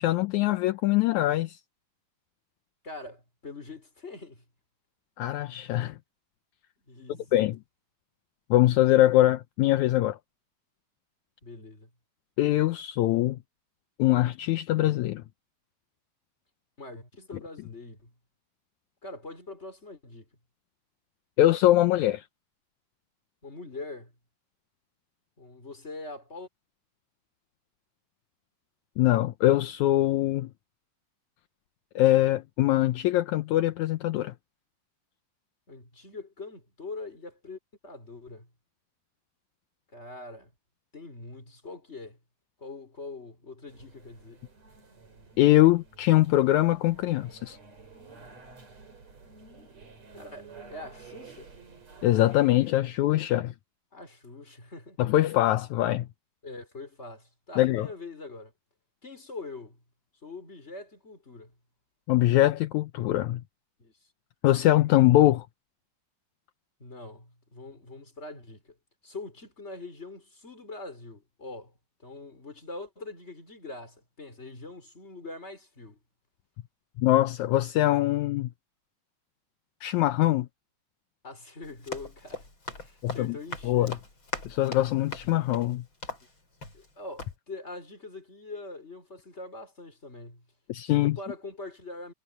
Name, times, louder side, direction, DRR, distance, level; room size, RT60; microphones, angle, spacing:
voice 1, 0.0-1.6 5.2-6.0 7.3-7.6 8.5-10.2 12.4-13.4 14.0-15.2 21.4-22.3 29.0-30.5 32.0-34.3 45.4-47.6 52.0-53.5 55.0-56.1 57.6-57.9 62.1-63.4 64.4-65.5 77.0-78.5 79.8-80.5 83.0-83.4 83.6-84.0 84.5-85.8 90.7-91.2, left 15 dB, 75° left, 1.8 m, -23 dB
voice 2, 2.8-4.4 6.9-7.3 11.4-11.9 16.8-18.1 19.0-20.3 23.4-24.1 25.4-26.5 35.7-38.5 39.9-40.5 40.9-42.2 42.6-44.4 50.1-51.5 53.9-55.0 56.4-58.5 59.0-59.8 60.2-61.5 63.8-63.9 66.8-68.7 69.0-71.7 72.0-76.0 81.2-82.5 82.8-84.0 86.7-90.4 90.8-92.1, left 3 dB, 15° left, 4.8 m, -43 dB
sound 1, 43.7-52.7, right 4 dB, 45° right, 6.7 m, -51 dB
Run, 81.6-86.9 87.2-87.3, left 2 dB, 35° left, 7.3 m, -40 dB
omnidirectional pair, 4.1 m